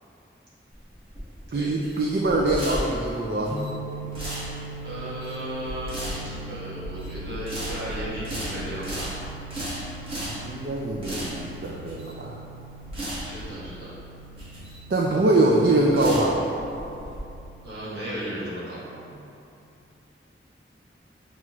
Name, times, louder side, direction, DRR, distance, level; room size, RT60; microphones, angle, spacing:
sound 1, 0.7-17.2, equal, 30° right, 1.2 m, -36 dB
voice 1, 1.5-3.5 10.1-12.4 14.9-16.4, right 2 dB, 55° right, -3 dB, 0.3 m, -23 dB
sound 2, 3.5-19.1, right 2 dB, 45° left, 0.4 m, -42 dB
voice 2, 4.8-9.1 13.2-14.0 17.6-18.8, right 1 dB, 75° right, -9 dB, 1.3 m, -35 dB
5.9 x 2.4 x 3.0 m, 2.8 s
head